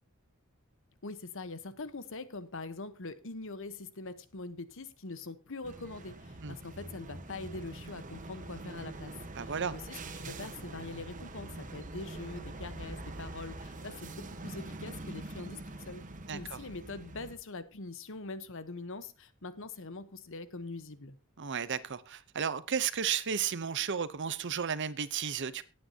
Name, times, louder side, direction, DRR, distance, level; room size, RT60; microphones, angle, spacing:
voice 1, 1.0-16.0 16.3-21.1, left 3 dB, 65° left, 1.1 m, -43 dB
sound 1, 5.6-17.4, right 2 dB, 40° right, 1.2 m, -44 dB
voice 2, 9.4-9.7 16.3-16.6 21.4-25.6, right 7 dB, 60° right, 0.8 m, -33 dB
18.0 x 8.8 x 2.8 m
head